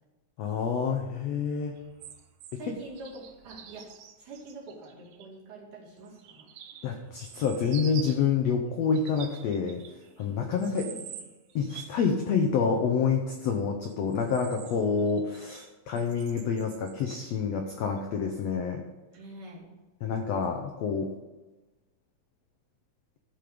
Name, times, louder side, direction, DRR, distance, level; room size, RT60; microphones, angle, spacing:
voice 1, 0.4-1.7 6.8-9.8 10.2-10.9 11.5-18.8 20.0-21.1, left 6 dB, 85° left, 3 dB, 1.4 m, -28 dB
sound 1, 1.8-5.3 6.0-8.3 8.8-10.2 10.6-12.1 13.9-15.7 16.0-17.3 18.0-18.1, right 9 dB, 85° right, 1.4 m, -47 dB
voice 2, 2.5-3.9 4.2-6.5 10.2-10.3 10.6-11.2 19.1-19.7, right 2 dB, 60° right, -5 dB, 4.0 m, -45 dB
13.5 x 5.3 x 5.0 m, 1.1 s
omnidirectional pair, 4.0 m